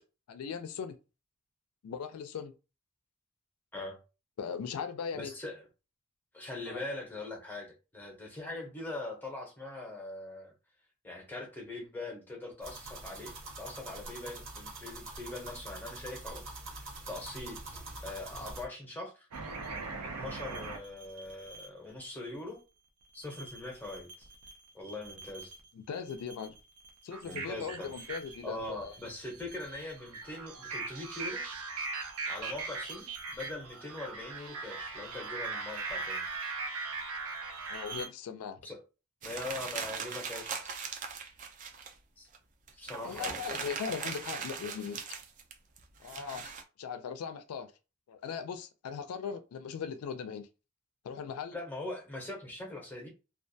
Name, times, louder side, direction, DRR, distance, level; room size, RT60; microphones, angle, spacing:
voice 1, 0.3-1.0 1.8-2.5 4.4-5.3 6.7-6.8 25.7-26.5 27.0-28.9 37.7-38.6 43.0-45.0 46.0-46.5 46.8-47.7 48.1-50.5 51.0-51.6, left 6 dB, 85° left, 0.3 m, -39 dB
voice 2, 5.1-5.7 6.3-10.5 11.0-17.6 18.0-19.3 20.0-22.6 23.1-24.3 24.7-25.6 27.2-28.1 28.4-31.4 32.3-36.2 38.6-38.8 39.2-40.8 42.2-42.3 42.7-43.3 51.5-53.1, left 2 dB, 10° left, 0.6 m, -42 dB
sound 1, 12.6-18.6, right 2 dB, 60° right, 1.0 m, -45 dB
sound 2, 19.3-21.7 23.2-24.5 24.8-25.7 26.1-38.1, right 4 dB, 90° right, 0.5 m, -40 dB
sound 3, 39.2-41.9 42.3-42.4 42.7-46.6, right 6 dB, 35° right, 0.3 m, -40 dB
2.3 x 2.2 x 2.6 m
head